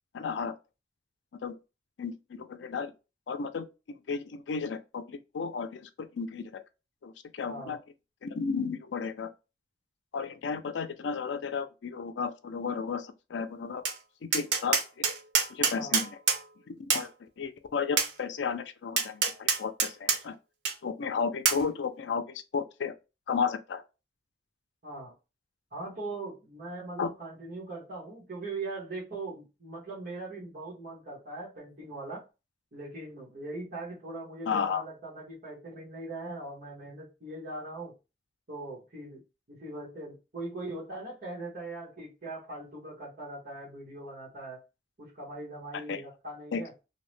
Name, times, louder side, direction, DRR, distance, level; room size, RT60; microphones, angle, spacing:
voice 1, 0.1-0.5 1.4-1.6 2.0-2.9 3.3-6.6 7.0-7.8 8.2-9.3 10.1-13.8 14.3-15.1 15.5-16.1 16.7-20.4 20.8-22.9 23.3-23.8 27.0-27.1 34.5-34.8 45.9-46.0 46.5-46.6, left 5 dB, 80° left, 0.4 m, -33 dB
voice 2, 7.4-7.8 15.7-16.0 24.8-25.1 25.7-32.2 32.7-37.9 38.5-39.2 39.5-44.6 45.0-46.7, right 2 dB, 50° right, 1.1 m, -40 dB
Tap, 13.8-14.0 14.3-16.4 16.9-17.1 18.0-18.1 19.0-20.2 20.6-20.7 21.4-21.6, right 5 dB, 80° right, 0.6 m, -26 dB
2.7 x 2.1 x 3.1 m
head